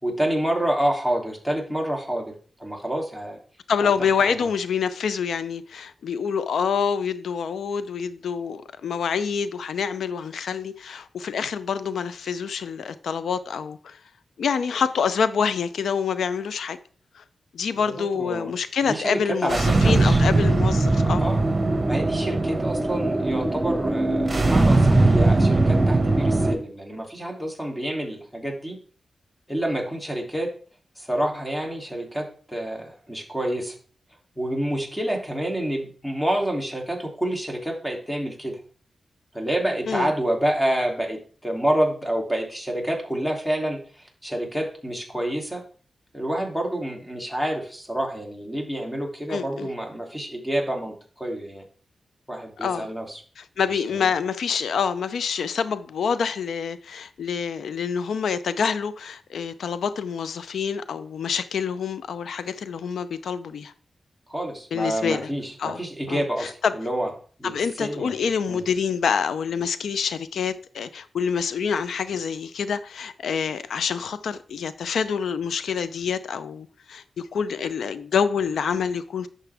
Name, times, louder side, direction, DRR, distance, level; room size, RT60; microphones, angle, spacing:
voice 1, 0.0-2.3 2.6-3.4 3.8-4.1 4.4-4.5 18.0-18.5 18.8-19.6 19.8-20.2 21.2-21.5 21.9-28.7 29.5-30.5 31.0-33.7 34.4-38.6 39.3-41.2 41.4-45.6 46.1-51.6 52.3-53.2 53.7-54.1 64.3-67.1 67.4-67.5 67.8-68.1 68.5-68.6, right 1 dB, 5° left, 3.1 m, -28 dB
voice 2, 3.7-14.0 14.4-16.8 17.1-17.2 17.5-21.2 39.9-40.1 49.3-49.7 52.6-52.9 53.4-63.7 64.7-65.3 65.6-65.8 66.1-66.7 67.4-79.3, left 6 dB, 85° left, 0.6 m, -27 dB
sound 1, 19.5-26.5, right 2 dB, 35° right, 1.7 m, -20 dB
11.0 x 6.8 x 3.5 m
cardioid pair, 60°, 0 cm